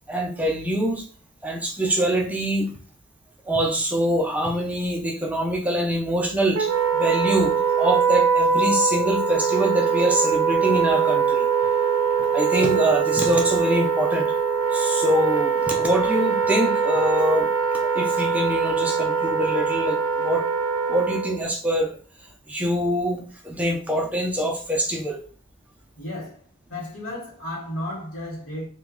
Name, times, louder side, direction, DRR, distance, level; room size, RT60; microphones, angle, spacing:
voice 1, 0.1-1.0 1.4-2.7 3.5-11.5 12.3-14.3 14.7-17.5 17.8-20.5 20.9-21.9 22.5-25.2, right 1 dB, 5° right, 0 dB, 0.5 m, -24 dB
Wind instrument woodwind instrument, 6.5-21.4, right 6 dB, 85° right, 0.5 m, -22 dB
voice 2, 25.9-26.4 26.7-28.7, left 1 dB, 75° left, -9 dB, 1.7 m, -33 dB
3.0 x 2.3 x 3.7 m, 0.43 s
head